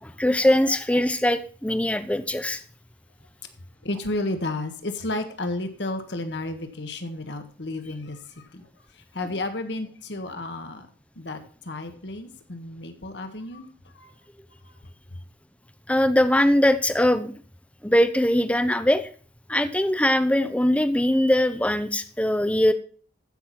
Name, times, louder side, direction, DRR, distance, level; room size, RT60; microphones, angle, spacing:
voice 1, 0.0-2.6 15.9-17.3 17.8-19.0 19.5-22.7, left 1 dB, 5° left, 0.7 m, -21 dB
voice 2, 3.8-8.7 8.9-10.9 11.1-13.7 13.9-14.1, left 2 dB, 70° left, 1.6 m, -32 dB
14.5 x 6.1 x 4.2 m
head